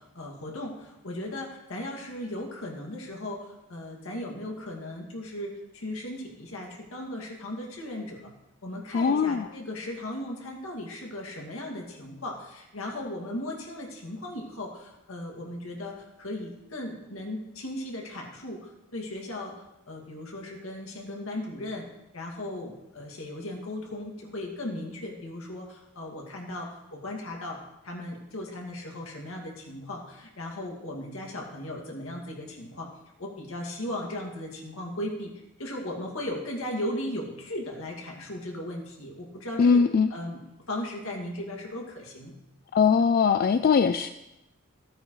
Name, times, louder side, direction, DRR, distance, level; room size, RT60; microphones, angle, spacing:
voice 1, 0.0-8.3 8.6-19.5 19.9-21.9 22.1-32.9 33.2-35.3 35.6-39.8 40.1-42.3, left 1 dB, 75° left, 0 dB, 2.2 m, -37 dB
voice 2, 8.9-9.5 39.6-40.1 42.7-44.1, left 6 dB, 45° left, 9 dB, 0.3 m, -21 dB
15.5 x 9.0 x 3.2 m, 0.92 s
head